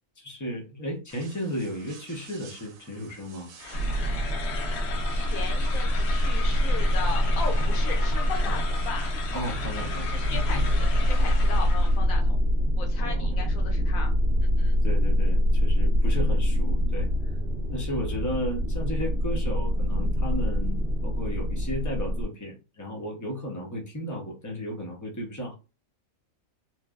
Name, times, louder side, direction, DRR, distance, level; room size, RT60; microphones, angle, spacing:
voice 1, 0.2-3.5 8.4-8.6 9.3-10.6 13.0-13.3 14.8-17.3 17.7-25.5, equal, 30° left, -1 dB, 0.3 m, -34 dB
sound 1, 1.1-6.1, right 5 dB, 80° right, 1.0 m, -52 dB
sound 2, 3.6-12.0, left 4 dB, 60° left, 0.8 m, -37 dB
sound 3, 3.7-22.2, equal, 60° right, 0.8 m, -25 dB
voice 2, 5.1-9.1 10.1-10.6 11.0-12.4 12.8-14.2 14.6-14.7, left 5 dB, 85° left, 3 dB, 1.2 m, -37 dB
3.0 x 2.0 x 2.2 m, 0.30 s
omnidirectional pair, 1.4 m